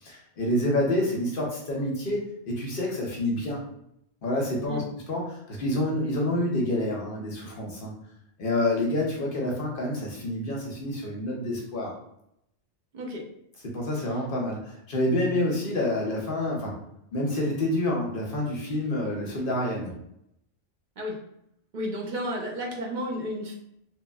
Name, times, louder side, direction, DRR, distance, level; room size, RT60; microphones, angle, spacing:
voice 1, 0.0-3.6 4.2-7.9 8.4-11.9 13.6-16.7 17.1-19.9, left 1 dB, 55° left, -2 dB, 0.7 m, -28 dB
voice 2, 21.7-23.5, equal, 55° right, -1 dB, 0.5 m, -32 dB
3.0 x 2.4 x 2.3 m, 0.76 s
omnidirectional pair, 1.3 m